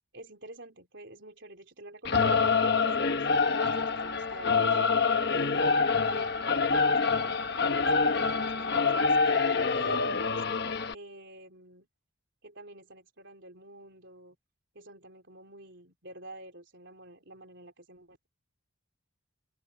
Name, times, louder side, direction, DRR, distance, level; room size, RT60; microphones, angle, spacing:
voice 1, 0.1-2.3 2.6-4.8 5.3-7.2 7.6-10.4 10.9-11.9 12.4-14.4 14.7-18.3, right 1 dB, 60° right, 4.2 m, -49 dB
Singing / Musical instrument, 2.0-10.9, left 4 dB, 50° left, 1.2 m, -26 dB
open air
head